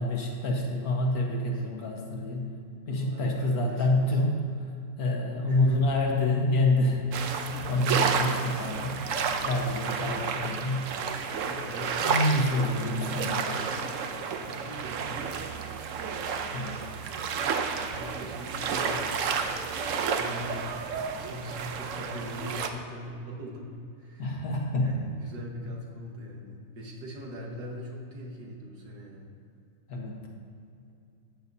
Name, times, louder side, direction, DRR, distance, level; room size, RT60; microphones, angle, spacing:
voice 1, 0.0-2.5 2.9-4.4 5.0-9.0 9.4-10.9 12.0-13.5 16.5-16.8 24.2-25.1 29.9-30.3, left 1 dB, 70° left, 0 dB, 1.8 m, -27 dB
voice 2, 2.9-4.2 5.5-5.8 11.0-14.1 14.3-15.4 17.7-20.7 21.1-24.4 24.8-29.3, left 1 dB, 85° right, -1 dB, 2.1 m, -42 dB
sound 1, 7.1-22.7, right 6 dB, 60° right, 0.9 m, -31 dB
14.0 x 9.1 x 2.7 m, 2.5 s
omnidirectional pair, 1.7 m